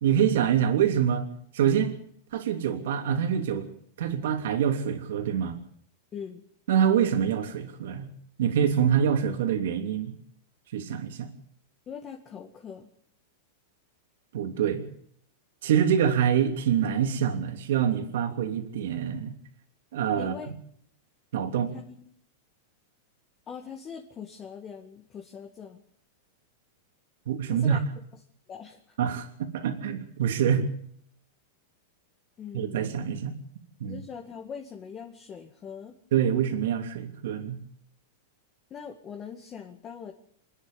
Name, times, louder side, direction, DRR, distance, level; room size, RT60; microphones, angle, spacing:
voice 1, 0.0-1.3 1.5-2.0 2.3-3.7 4.0-5.6 6.7-8.1 8.4-10.2 10.7-11.3 14.3-14.9 15.6-19.4 19.9-20.3 21.3-21.7 27.3-27.8 29.0-30.7 32.5-33.3 33.8-34.0 36.1-37.6, right 8 dB, 70° right, 4 dB, 3.1 m, -25 dB
voice 2, 6.1-6.4 11.9-12.9 20.2-20.5 21.7-21.9 23.5-25.8 27.5-27.8 28.5-28.8 32.4-33.0 33.9-36.0 38.7-40.1, left 7 dB, 20° left, 2 dB, 2.0 m, -41 dB
28.0 x 10.0 x 9.4 m, 0.66 s
supercardioid pair, 160°, 0 cm